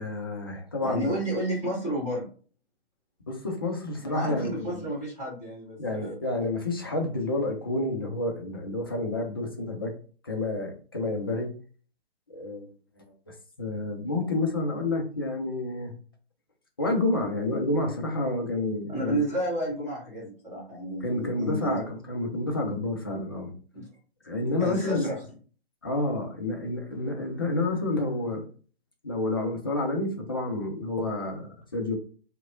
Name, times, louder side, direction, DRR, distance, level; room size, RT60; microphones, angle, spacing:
voice 1, 0.0-1.2 3.3-4.7 5.8-9.9 10.2-11.5 12.3-12.7 13.3-15.9 16.8-19.2 21.0-23.5 24.2-25.1 25.8-28.5 29.0-31.9, left 2 dB, 25° left, 2 dB, 0.3 m, -29 dB
voice 2, 0.8-2.3 4.0-6.1 18.9-21.8 23.7-23.9 24.6-25.2, right 1 dB, 10° right, -7 dB, 1.5 m, -31 dB
2.8 x 2.1 x 2.5 m, 0.40 s
figure-of-eight pair, 135°, 31 cm